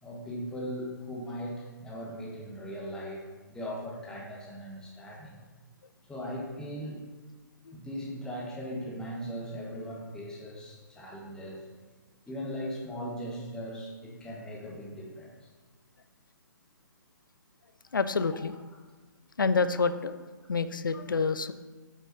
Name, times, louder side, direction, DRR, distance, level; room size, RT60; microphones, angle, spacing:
voice 1, 0.0-5.4 6.1-7.0 7.7-11.7 12.3-15.5, equal, 5° left, -4 dB, 1.4 m, -39 dB
voice 2, 17.9-18.5 19.4-20.2 20.5-21.5, left 4 dB, 70° left, 12 dB, 0.5 m, -27 dB
7.7 x 6.1 x 4.2 m, 1.3 s
figure-of-eight pair, 130°, 11 cm